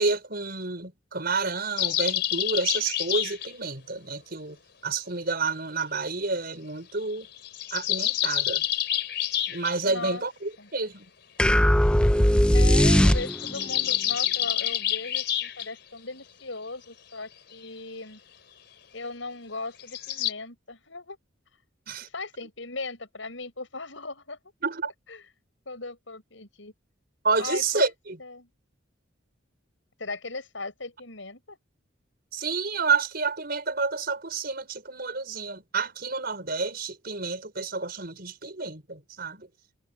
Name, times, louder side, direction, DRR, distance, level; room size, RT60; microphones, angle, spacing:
voice 1, 0.0-4.6 4.8-7.3 7.7-8.6 9.5-11.1 21.9-22.1 24.6-24.9 27.2-28.2 32.3-39.5, right 4 dB, 50° right, 5.3 m, -29 dB
sound 1, 1.8-3.5 7.2-9.7 12.9-15.7 19.8-20.3, left 12 dB, 60° left, 3.9 m, -28 dB
voice 2, 9.8-10.2 10.6-10.7 12.5-18.2 18.9-21.2 22.1-24.4 25.1-25.2 25.7-26.7 27.4-27.9 28.2-28.5 30.0-31.6, left 3 dB, 75° left, 7.0 m, -37 dB
sound 2, 11.4-13.7, equal, 5° left, 0.5 m, -19 dB
head